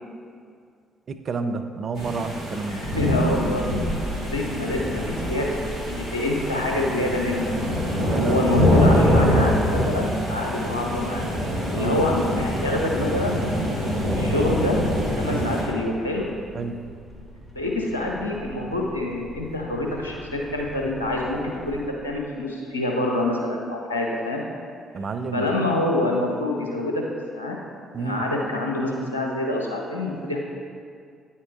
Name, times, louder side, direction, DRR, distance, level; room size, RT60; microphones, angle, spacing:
voice 1, 1.1-2.8 8.0-8.5 11.7-12.0 15.3-15.5 16.5-16.8 24.9-25.5 27.9-28.2, right 4 dB, 45° right, 8 dB, 0.5 m, -29 dB
sound 1, 2.0-15.6, equal, 70° right, 1.8 m, -24 dB
voice 2, 2.7-3.6 4.2-7.7 8.2-11.3 11.7-13.4 14.1-14.8 15.2-16.3 17.5-24.5 25.3-27.0 27.3-27.6 28.0-30.4, left 2 dB, 90° left, -1 dB, 0.7 m, -26 dB
sound 2, 2.8-21.9, left 1 dB, 15° left, 1.7 m, -40 dB
9.3 x 8.3 x 2.5 m, 2.2 s
figure-of-eight pair, 45°, 0 cm